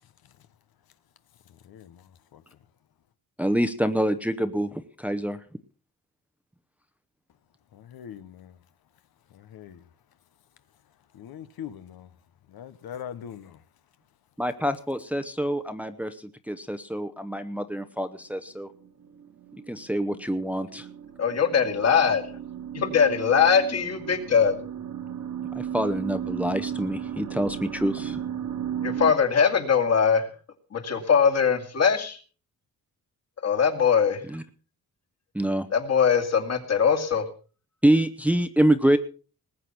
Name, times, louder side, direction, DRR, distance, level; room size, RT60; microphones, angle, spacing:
voice 1, 1.6-2.0 2.3-2.4 7.7-8.5 9.3-9.8 11.1-12.1 12.5-13.6, left 9 dB, 85° left, 1.2 m, -41 dB
voice 2, 3.4-5.4 14.4-18.7 19.7-20.9 25.5-28.2 34.3-34.4 35.3-35.7 37.8-39.0, right 1 dB, 5° right, 0.8 m, -26 dB
sound 1, 18.8-29.1, right 9 dB, 60° right, 1.8 m, -35 dB
voice 3, 21.2-22.2 22.7-24.5 28.8-30.3 30.7-32.2 33.4-34.2 35.7-37.3, left 6 dB, 45° left, 2.4 m, -21 dB
20.0 x 8.4 x 5.9 m
wide cardioid pair, 160°, 36 cm